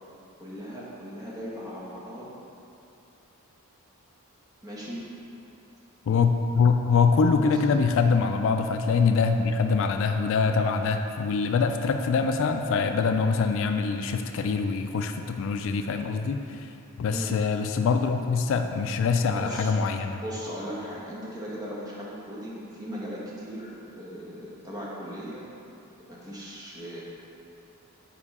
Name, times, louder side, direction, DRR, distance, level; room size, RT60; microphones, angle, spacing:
voice 1, 0.4-2.3 4.6-5.0 7.4-7.6 17.1-17.4 19.0-19.8 20.1-25.4 26.1-27.0, equal, 15° right, -6 dB, 1.2 m, -38 dB
voice 2, 6.1-16.7 17.0-20.2, left 5 dB, 60° left, 6 dB, 0.3 m, -24 dB
7.0 x 4.8 x 4.2 m, 2.7 s
head